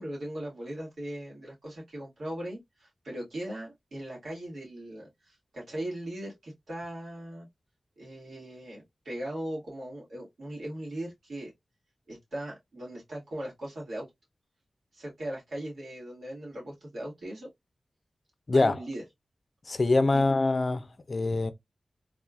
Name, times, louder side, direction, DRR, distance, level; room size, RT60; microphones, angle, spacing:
voice 1, 0.0-7.5 8.0-11.5 12.1-14.1 14.9-17.5 18.5-19.0 20.1-20.2, right 1 dB, 85° right, 1.9 m, -39 dB
voice 2, 18.5-18.8 19.7-21.5, left 2 dB, 50° left, 0.5 m, -24 dB
3.4 x 2.4 x 2.3 m
wide cardioid pair, 70°, 0 cm